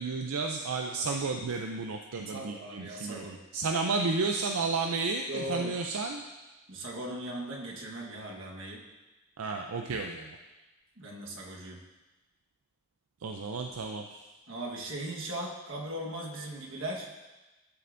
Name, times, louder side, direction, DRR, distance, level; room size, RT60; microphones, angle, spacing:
voice 1, 0.0-6.2 9.4-10.4 13.2-14.3, right 4 dB, 85° right, 3 dB, 0.5 m, -32 dB
voice 2, 2.3-3.4 5.3-5.8 6.7-8.8 11.0-11.8 14.5-17.1, right 1 dB, 60° right, -2 dB, 1.4 m, -38 dB
13.0 x 6.7 x 2.6 m, 1.1 s
head